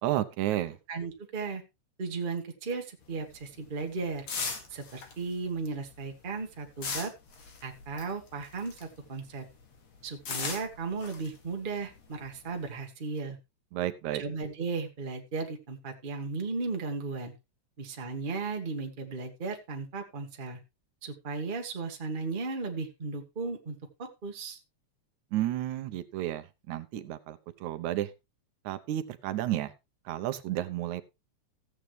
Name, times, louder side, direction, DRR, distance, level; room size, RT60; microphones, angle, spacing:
voice 1, 0.0-0.8 13.7-14.2 25.3-28.1 28.7-29.7 30.1-31.0, right 13 dB, 80° right, 11 dB, 2.2 m, -32 dB
voice 2, 0.9-1.6 2.0-4.3 4.7-7.1 7.6-9.4 10.0-13.4 14.2-17.3 17.8-20.6 21.0-24.6, right 4 dB, 25° right, 2 dB, 1.1 m, -35 dB
sound 1, 3.0-9.1 9.4-12.8, left 4 dB, 65° left, 3.2 m, -39 dB
15.0 x 8.1 x 3.2 m, 0.24 s
omnidirectional pair, 3.3 m